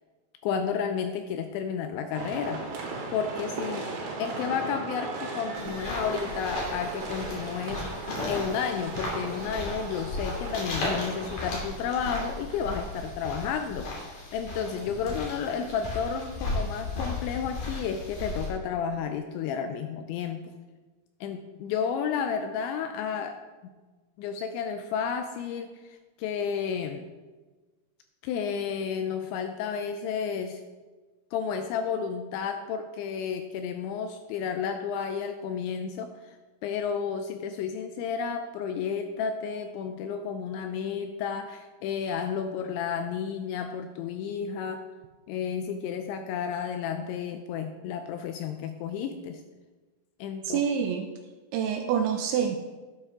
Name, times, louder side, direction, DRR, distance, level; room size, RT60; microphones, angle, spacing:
voice 1, 0.4-2.6 3.1-3.9 4.2-7.9 8.2-20.4 21.2-23.4 23.6-23.7 24.2-27.0 28.2-30.6 31.3-36.4 36.6-44.8 45.3-49.4 50.2-50.6, left 7 dB, 85° left, 7 dB, 2.6 m, -32 dB
sound 1, 2.1-11.7, right 3 dB, 65° right, 3.5 m, -37 dB
sound 2, 5.5-18.5, left 2 dB, 50° left, 3.8 m, -35 dB
voice 2, 50.4-51.1 51.5-52.6, right 8 dB, 85° right, 5 dB, 2.6 m, -26 dB
12.0 x 9.3 x 3.6 m, 1.3 s
omnidirectional pair, 5.8 m